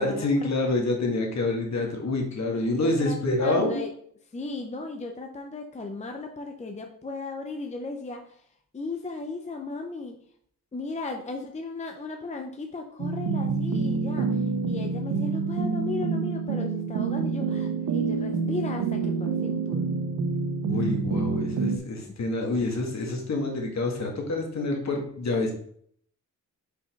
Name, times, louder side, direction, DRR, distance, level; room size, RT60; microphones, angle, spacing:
voice 1, 0.0-3.8 20.7-25.5, left 2 dB, 50° left, 1 dB, 1.9 m, -27 dB
voice 2, 2.8-3.9 4.3-8.4 8.7-10.2 10.7-14.3 14.7-19.9, left 3 dB, 20° left, 3 dB, 0.6 m, -36 dB
sound 1, 13.0-21.8, right 4 dB, 80° right, 0.9 m, -27 dB
5.4 x 4.2 x 5.3 m, 0.63 s
wide cardioid pair, 125°, 34 cm